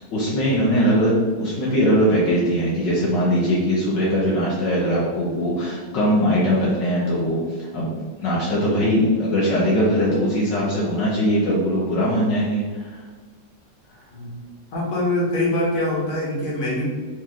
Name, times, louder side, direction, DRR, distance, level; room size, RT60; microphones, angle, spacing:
voice 1, 0.1-13.0, equal, 75° left, -7 dB, 1.6 m, -21 dB
voice 2, 14.7-16.8, left 1 dB, 50° left, -6 dB, 1.7 m, -24 dB
4.5 x 3.2 x 3.6 m, 1.5 s
omnidirectional pair, 2.0 m